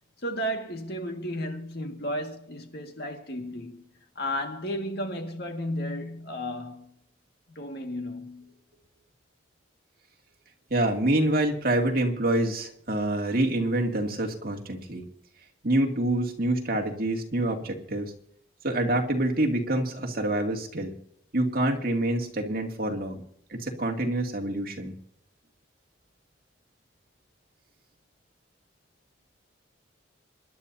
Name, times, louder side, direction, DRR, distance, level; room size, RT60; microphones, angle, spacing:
voice 1, 0.2-3.8 4.2-6.9 7.5-8.5, equal, 55° left, 1.9 m, -33 dB
voice 2, 10.7-15.0 15.6-18.1 18.6-20.9 21.3-23.2 23.5-24.9, right 1 dB, 50° right, 2.4 m, -26 dB
25.5 x 11.5 x 2.8 m
head